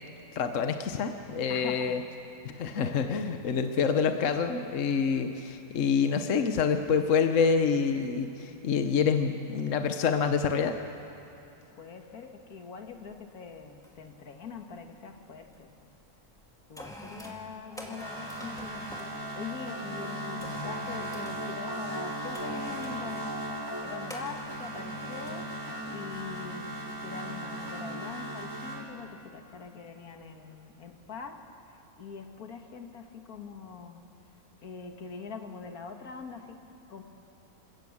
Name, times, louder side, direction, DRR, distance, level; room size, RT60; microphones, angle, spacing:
voice 1, 0.3-2.0 2.4-10.8, left 6 dB, 60° left, 7 dB, 1.2 m, -27 dB
voice 2, 1.5-1.9 2.7-3.2 11.8-15.9 16.7-31.4 31.7-34.0 34.6-36.6 36.9-37.0, left 5 dB, 75° left, 5 dB, 2.0 m, -43 dB
sound 1, 13.0-13.2 13.8-14.1 14.4-15.6 16.2-19.2 20.4-21.5 22.3-23.0 24.1-25.4 25.8-26.0, equal, ahead, 2.2 m, -47 dB
sound 2, 17.7-28.8, right 1 dB, 15° right, 5.8 m, -37 dB
28.0 x 17.5 x 7.2 m, 2.9 s
omnidirectional pair, 1.6 m